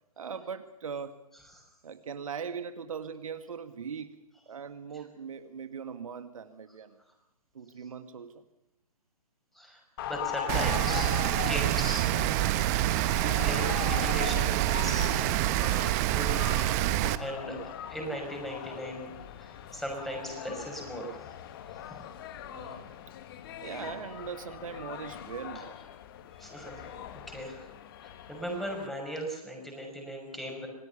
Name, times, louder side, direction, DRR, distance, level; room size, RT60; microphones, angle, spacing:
voice 1, 0.2-1.2 1.8-4.2 4.5-7.0 7.5-8.4 22.4-22.9 23.6-25.8, right 6 dB, 60° right, 9 dB, 2.0 m, -40 dB
sound 1, 10.0-28.9, left 10 dB, 35° left, 1.9 m, -40 dB
voice 2, 10.1-12.0 13.2-15.1 15.6-15.8 16.1-16.9 17.2-17.6 17.9-22.0 26.3-26.9 27.3-27.7 28.0-30.7, equal, ahead, 1 dB, 5.8 m, -38 dB
Rain, 10.5-17.2, right 15 dB, 25° right, 1.1 m, -27 dB
27.0 x 19.0 x 7.0 m, 0.88 s
figure-of-eight pair, 135°, 20 cm